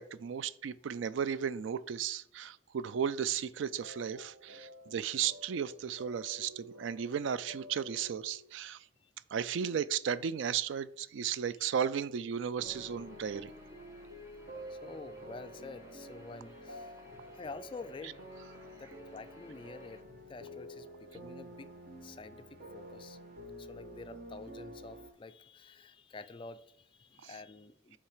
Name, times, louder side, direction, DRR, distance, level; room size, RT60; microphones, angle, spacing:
voice 1, 0.0-8.8 9.3-13.5, right 8 dB, 75° right, 0.4 m, -35 dB
sound 1, 3.8-8.6, equal, 90° right, 1.5 m, -52 dB
Guitar, 12.6-20.0, left 2 dB, 15° right, 1.2 m, -58 dB
sound 2, 12.6-25.1, equal, 45° right, 1.2 m, -49 dB
voice 2, 14.7-17.0 17.3-18.2 18.8-20.0 20.3-21.8 22.0-23.2 23.6-28.0, left 4 dB, 25° left, 0.3 m, -48 dB
8.5 x 3.3 x 4.9 m
head